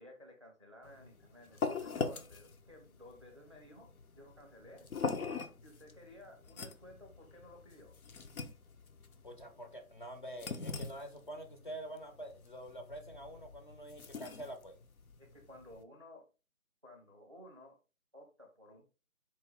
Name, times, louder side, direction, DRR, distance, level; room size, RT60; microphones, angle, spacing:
voice 1, 0.0-3.9 4.2-4.9 5.6-7.9 15.2-16.2 16.8-17.8 18.1-18.8, left 1 dB, 20° right, 1 dB, 0.6 m, -55 dB
sound 1, 0.8-15.8, left 4 dB, 90° left, 0.8 m, -42 dB
voice 2, 9.2-14.8, right 1 dB, 35° left, 4 dB, 0.6 m, -46 dB
4.5 x 2.6 x 3.4 m, 0.32 s
figure-of-eight pair, 160°, 42 cm